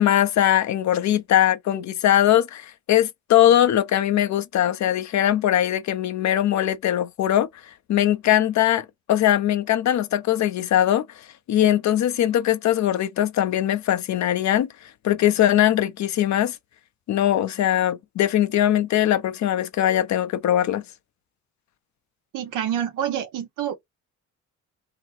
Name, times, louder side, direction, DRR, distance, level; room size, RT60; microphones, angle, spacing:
voice 1, 0.0-7.5 7.9-11.1 11.5-14.7 15.0-16.6 17.1-20.8, left 12 dB, 65° left, 0.8 m, -21 dB
voice 2, 22.3-23.8, right 10 dB, 90° right, 1.1 m, -27 dB
3.4 x 3.0 x 4.3 m
cardioid pair, 90°, 30 cm